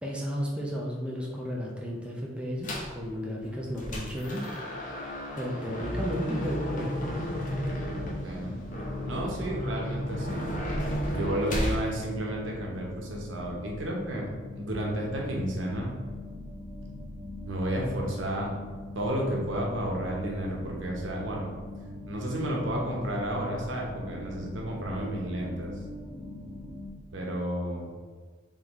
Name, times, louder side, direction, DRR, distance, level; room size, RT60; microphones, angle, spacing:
voice 1, 0.0-4.5 5.4-7.3, equal, 5° right, -3 dB, 0.5 m, -33 dB
sound 1, 2.6-3.0 3.5-11.8, equal, 45° left, 0.7 m, -33 dB
sound 2, 7.2-26.9, left 1 dB, 35° right, 1.3 m, -42 dB
voice 2, 8.0-8.6 9.0-10.5 11.1-14.3 14.5-15.9 17.4-18.5 18.9-21.5 22.1-25.7 27.1-27.9, right 1 dB, 90° right, -2 dB, 0.9 m, -32 dB
3.8 x 3.5 x 3.0 m, 1.5 s
head